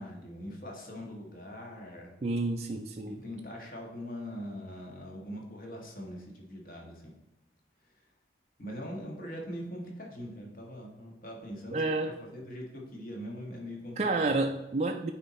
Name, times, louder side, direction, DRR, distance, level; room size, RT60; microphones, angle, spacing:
voice 1, 0.0-2.1 3.0-7.1 8.0-8.1 8.6-11.9 12.2-14.4, equal, 50° left, 0 dB, 1.5 m, -42 dB
voice 2, 2.2-3.2 11.7-12.1 14.0-15.1, right 2 dB, 35° right, 3 dB, 0.3 m, -29 dB
9.1 x 4.3 x 4.1 m, 0.96 s
head